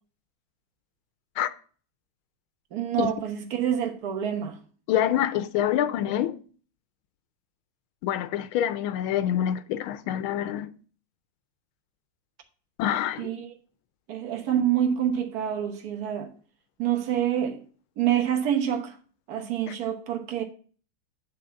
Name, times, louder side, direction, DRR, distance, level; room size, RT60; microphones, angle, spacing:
voice 1, 2.7-4.6 13.2-13.5 14.1-16.3 16.8-17.6 18.0-19.0 19.3-20.4, right 10 dB, 50° right, 1.6 m, -27 dB
voice 2, 4.9-6.4 8.0-10.7 12.8-13.3 19.7-19.8, left 11 dB, 80° left, 1.5 m, -26 dB
9.9 x 3.7 x 7.0 m
omnidirectional pair, 2.3 m